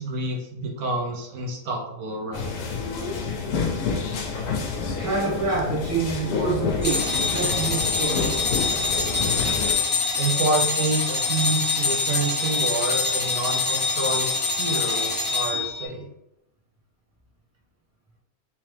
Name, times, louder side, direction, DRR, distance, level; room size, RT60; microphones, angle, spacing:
voice 1, 0.0-2.5 10.2-16.1, right 3 dB, 80° right, 1 dB, 1.2 m, -28 dB
sound 1, 2.3-9.8, left 5 dB, 80° left, 1.2 m, -28 dB
voice 2, 4.9-8.3, right 3 dB, 15° right, -4 dB, 0.8 m, -27 dB
sound 2, 6.8-15.9, left 4 dB, 5° left, 1.0 m, -25 dB
3.5 x 3.0 x 3.2 m, 0.85 s
omnidirectional pair, 1.6 m